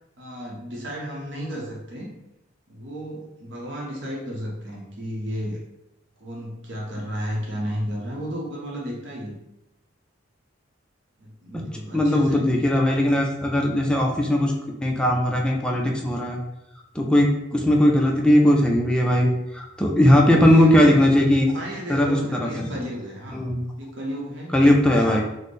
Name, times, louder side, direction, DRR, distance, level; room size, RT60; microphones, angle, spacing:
voice 1, 0.2-2.1 2.7-5.6 6.2-9.4 11.2-12.5 20.1-21.0 21.5-23.4 23.8-24.6 25.0-25.2, equal, 65° right, -3 dB, 0.7 m, -33 dB
voice 2, 11.9-14.5 14.8-16.4 16.9-21.5 21.9-22.7 23.3-23.6 24.5-25.2, left 1 dB, 5° left, 0 dB, 0.3 m, -19 dB
4.1 x 2.0 x 3.2 m, 0.88 s
head